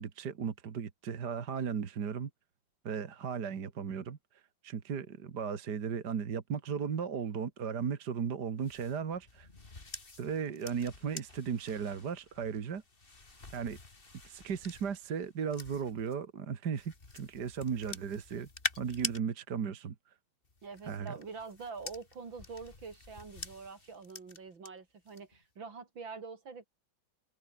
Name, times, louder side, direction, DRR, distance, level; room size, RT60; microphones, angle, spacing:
voice 1, 0.0-2.3 2.8-4.2 4.6-9.5 10.2-12.8 13.5-13.8 14.2-18.5 18.8-20.0 20.9-21.1, right 7 dB, 55° right, 2.2 m, -36 dB
sound 1, 8.6-16.2 16.7-19.2 20.5-24.7 25.1-25.4, left 3 dB, 30° left, 2.6 m, -45 dB
voice 2, 20.6-26.7, right 5 dB, 75° right, 3.9 m, -45 dB
omnidirectional pair, 2.1 m